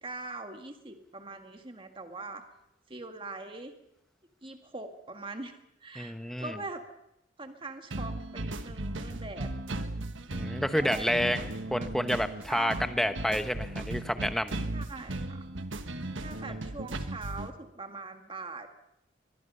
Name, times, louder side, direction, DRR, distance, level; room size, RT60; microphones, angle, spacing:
voice 1, 0.0-2.4 2.9-3.7 4.4-6.8 7.4-9.5 10.7-11.3 11.8-11.9 12.5-12.9 14.7-15.5 16.2-18.7, right 3 dB, 25° right, 6 dB, 1.8 m, -42 dB
voice 2, 6.0-6.5 10.3-14.6, equal, ahead, 9 dB, 1.0 m, -29 dB
sound 1, 7.9-17.5, right 2 dB, 70° right, 1.5 m, -37 dB
22.5 x 22.0 x 5.6 m, 0.83 s
head